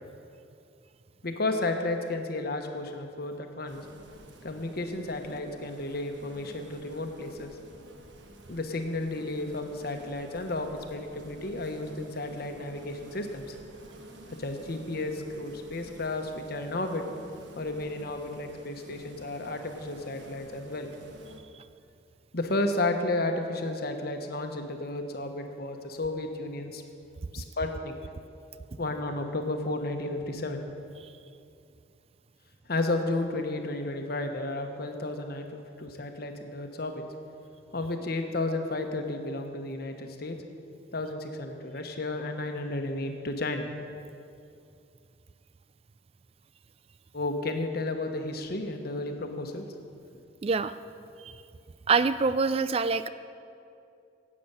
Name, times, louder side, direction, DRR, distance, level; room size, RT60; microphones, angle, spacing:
voice 1, 1.2-3.8 4.4-7.6 8.5-13.6 14.3-17.0 17.6-20.9 22.3-26.8 27.3-27.9 28.8-30.6 32.7-37.0 37.7-40.4 40.9-43.7 47.1-49.7, left 2 dB, 55° left, 5 dB, 1.1 m, -32 dB
sound 1, 3.6-21.4, right 1 dB, 70° right, 1.2 m, -50 dB
voice 2, 50.4-50.8 51.2-51.3 51.9-53.1, right 4 dB, 30° right, 13 dB, 0.3 m, -25 dB
12.0 x 8.6 x 7.0 m, 2.5 s
head